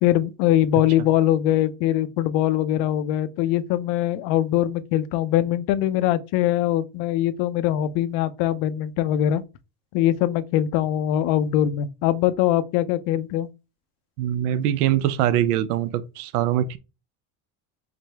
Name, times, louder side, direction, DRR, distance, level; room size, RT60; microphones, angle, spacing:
voice 1, 0.0-9.4 9.9-13.5, left 12 dB, 60° left, 0.6 m, -22 dB
voice 2, 14.2-16.8, right 11 dB, 90° right, 0.6 m, -23 dB
5.0 x 2.1 x 3.3 m
supercardioid pair, 105°, 44 cm